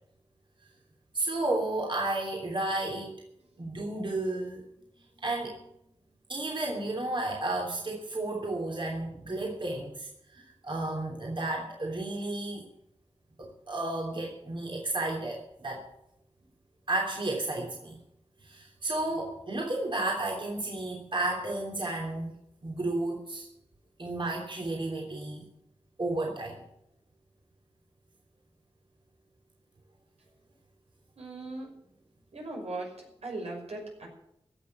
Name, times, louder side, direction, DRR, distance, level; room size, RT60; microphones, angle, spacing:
voice 1, 1.1-3.1 3.6-4.7 5.2-5.6 6.3-12.6 13.4-15.9 16.9-18.0 18.4-22.3 22.6-23.5 24.0-25.4 26.0-26.6, right 2 dB, 50° right, -1 dB, 3.2 m, -32 dB
voice 2, 31.2-31.7 32.3-32.9 33.2-34.1, right 2 dB, 85° right, -1 dB, 5.6 m, -38 dB
16.5 x 6.7 x 9.9 m, 0.77 s
wide cardioid pair, 60°, 11 cm